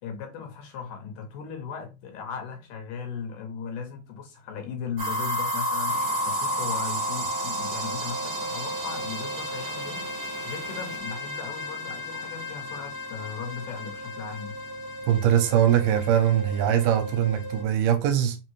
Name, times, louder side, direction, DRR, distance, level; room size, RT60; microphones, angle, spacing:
voice 1, 0.0-10.1 10.4-14.6, left 6 dB, 75° left, 2.0 m, -37 dB
sound 1, 5.0-17.6, equal, 60° right, 1.4 m, -32 dB
sound 2, 5.9-11.0, right 2 dB, 40° right, 1.4 m, -45 dB
voice 2, 15.1-18.4, right 10 dB, 80° right, 2.2 m, -22 dB
5.2 x 2.5 x 3.0 m
omnidirectional pair, 4.0 m